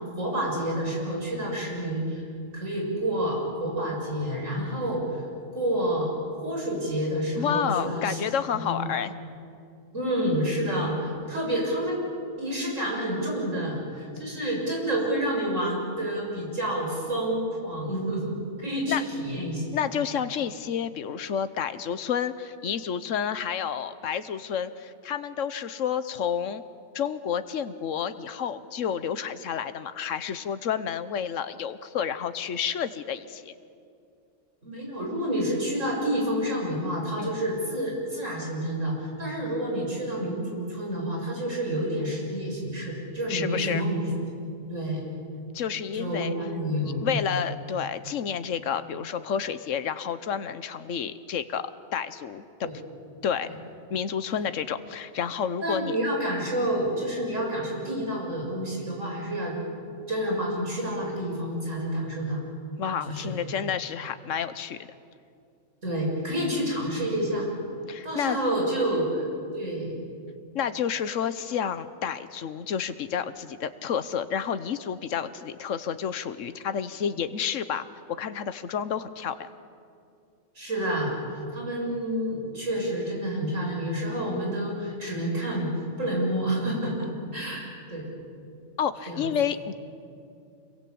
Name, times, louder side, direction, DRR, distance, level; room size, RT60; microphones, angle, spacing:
voice 1, 0.2-2.2 2.5-5.0 5.5-6.1 6.4-8.2 8.5-8.8 9.9-12.1 12.4-19.6 34.6-44.1 44.7-45.0 45.9-47.1 52.6-52.7 55.6-59.5 60.1-62.4 63.1-63.3 65.8-67.5 68.0-69.2 69.5-70.0 80.6-85.7 86.0-87.6 87.9-88.1 89.1-89.2, right 1 dB, 85° right, -2 dB, 7.3 m, -29 dB
voice 2, 7.4-9.1 18.9-19.0 19.7-26.6 26.9-33.5 37.2-37.3 43.3-43.8 45.5-46.3 47.0-52.7 53.2-53.5 53.9-55.9 56.6-56.7 62.8-64.8 67.9-68.4 70.5-79.5 88.8-89.7, left 8 dB, 85° left, 12 dB, 1.3 m, -30 dB
26.5 x 22.5 x 8.6 m, 2.4 s
omnidirectional pair, 1.3 m